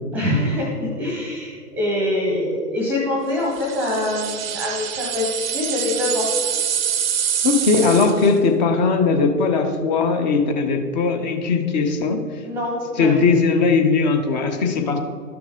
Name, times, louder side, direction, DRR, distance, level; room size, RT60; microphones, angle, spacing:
voice 1, 0.1-6.3 12.4-13.2, left 1 dB, 5° right, -3 dB, 0.9 m, -24 dB
sound 1, 3.5-8.4, right 9 dB, 40° right, 0.6 m, -25 dB
voice 2, 7.4-12.2 13.0-15.0, left 4 dB, 25° left, 6 dB, 0.8 m, -19 dB
12.5 x 6.1 x 3.7 m, 2.1 s
figure-of-eight pair, 125°, 48 cm